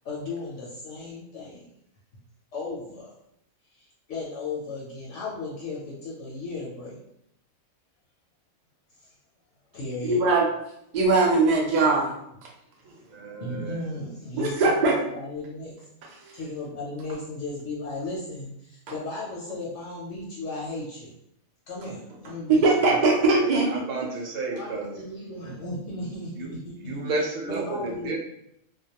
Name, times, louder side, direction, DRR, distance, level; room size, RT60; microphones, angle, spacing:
voice 1, 0.0-1.7 2.5-3.1 3.7-7.0 9.7-10.2 12.9-15.8 16.3-21.1 21.7-23.3 24.5-28.2, left 2 dB, 70° left, -5 dB, 0.9 m, -35 dB
voice 2, 10.0-10.5 10.9-12.1 14.4-15.0 22.4-23.7, right 3 dB, 60° right, -1 dB, 0.5 m, -20 dB
voice 3, 12.8-14.0 23.3-24.9 26.4-26.5 26.8-28.2, right 3 dB, 80° right, -1 dB, 1.0 m, -32 dB
2.2 x 2.1 x 2.8 m, 0.76 s
omnidirectional pair, 1.4 m